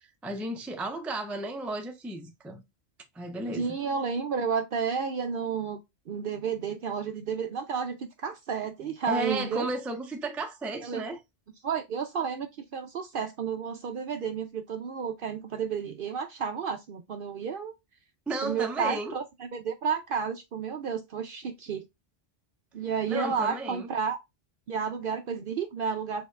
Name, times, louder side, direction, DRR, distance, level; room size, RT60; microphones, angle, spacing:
voice 1, 0.0-2.6 3.1-3.7 9.1-11.2 18.3-19.2 23.1-23.9, right 2 dB, ahead, 0.3 m, -33 dB
voice 2, 3.5-5.8 6.1-9.7 10.8-11.0 11.6-12.5 12.7-17.7 18.4-21.9 22.7-24.2 24.7-26.3, right 6 dB, 60° right, 0.6 m, -31 dB
6.4 x 2.8 x 2.3 m
omnidirectional pair, 1.2 m